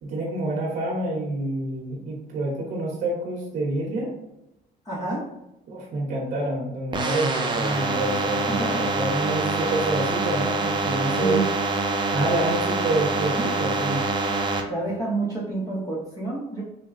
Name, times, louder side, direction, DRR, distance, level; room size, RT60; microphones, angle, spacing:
voice 1, 0.0-4.1 5.7-11.4 12.1-14.0, right 2 dB, 50° right, -3 dB, 1.0 m, -27 dB
voice 2, 4.8-5.3 8.5-8.8 11.1-11.5 14.7-16.6, right 2 dB, 20° left, -7 dB, 1.0 m, -28 dB
sound 1, 6.9-14.6, right 2 dB, 25° right, 0.5 m, -25 dB
3.8 x 2.2 x 3.9 m, 0.89 s
cardioid pair, 110°, 17 cm